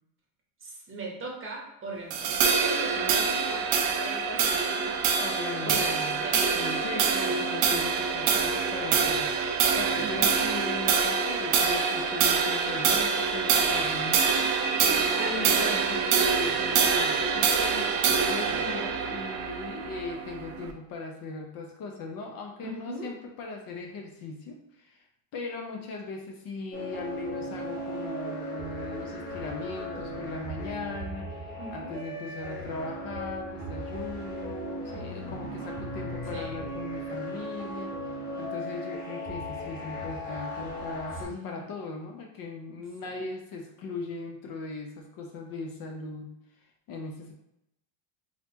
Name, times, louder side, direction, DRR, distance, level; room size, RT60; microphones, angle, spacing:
voice 1, 0.6-5.0 5.6-6.6 9.9-10.4 14.8-15.7 16.6-16.9 18.4-18.7 22.6-23.1 31.6-32.0 36.3-36.6 41.1-41.7 43.1-43.2, right 2 dB, 25° right, -1 dB, 0.9 m, -39 dB
sound 1, 2.1-20.7, right 6 dB, 90° right, 0.7 m, -25 dB
voice 2, 5.2-6.2 6.5-14.8 15.2-25.0 25.3-46.3 46.9-47.3, left 3 dB, 45° left, 1 dB, 0.6 m, -39 dB
sound 2, 26.7-41.2, equal, 15° left, 1.2 m, -37 dB
4.1 x 2.8 x 2.7 m, 0.80 s
cardioid pair, 135°, 49 cm